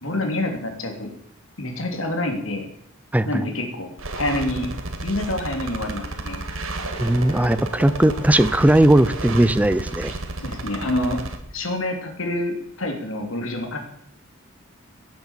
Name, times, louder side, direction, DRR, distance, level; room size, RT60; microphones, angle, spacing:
voice 1, 0.0-1.1 1.6-2.7 3.3-4.7 5.0-6.4 10.4-11.2 11.5-13.8, left 1 dB, 70° left, 3 dB, 3.1 m, -27 dB
voice 2, 3.1-3.4 7.0-10.1, right 1 dB, 5° right, 14 dB, 0.5 m, -18 dB
sound 1, 4.0-11.4, right 2 dB, 75° right, 2.0 m, -32 dB
sound 2, 5.6-11.0, equal, 30° left, 3.9 m, -45 dB
17.0 x 7.6 x 7.4 m, 0.71 s
head